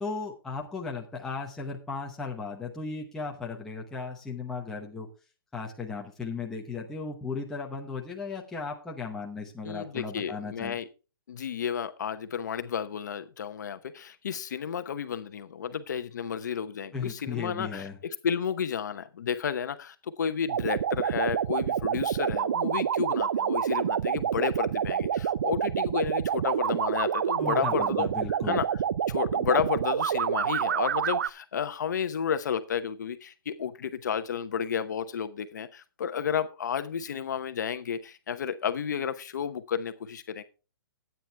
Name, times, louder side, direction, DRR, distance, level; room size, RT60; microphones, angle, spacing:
voice 1, 0.0-5.1 5.5-10.8 16.9-18.0 27.4-28.6, left 4 dB, 5° left, -1 dB, 0.8 m, -36 dB
voice 2, 9.6-10.9 11.3-17.8 18.2-28.1 28.5-28.6 29.1-40.4, left 7 dB, 55° left, 10 dB, 0.9 m, -32 dB
sound 1, 20.5-31.3, right 8 dB, 45° right, 0.4 m, -28 dB
12.0 x 9.2 x 3.4 m, 0.32 s
hypercardioid pair, 175°, 12 cm